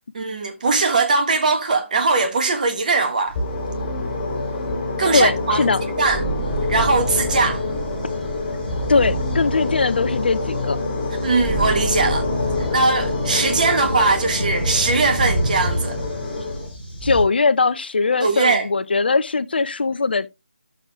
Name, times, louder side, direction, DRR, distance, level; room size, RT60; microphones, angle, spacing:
voice 1, 0.1-3.3 5.0-5.7 6.0-6.2 6.7-7.6 11.2-12.3 12.7-16.0 18.2-18.7, right 3 dB, 40° right, 1.6 m, -20 dB
sound 1, 3.3-17.2, equal, 5° right, 3.1 m, -32 dB
sound 2, 3.4-16.7, left 2 dB, 20° left, 2.9 m, -26 dB
voice 2, 5.1-5.8 8.9-10.8 17.0-20.3, left 4 dB, 55° left, 0.5 m, -20 dB
13.5 x 7.0 x 2.3 m
figure-of-eight pair, 160°, 6 cm